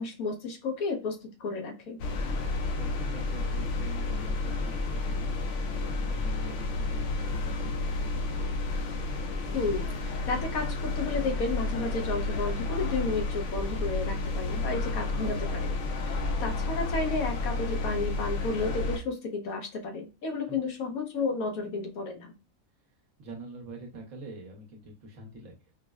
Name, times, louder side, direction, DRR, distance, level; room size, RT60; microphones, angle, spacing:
voice 1, 0.0-2.0 9.5-15.7 16.0-22.3, left 3 dB, 85° left, 3 dB, 1.2 m, -32 dB
sound 1, 2.0-19.0, left 3 dB, 65° left, 0.9 m, -31 dB
voice 2, 2.8-8.7 20.5-20.6 23.2-25.6, right 1 dB, 70° right, -1 dB, 1.3 m, -45 dB
5.1 x 2.0 x 2.3 m, 0.30 s
omnidirectional pair, 1.5 m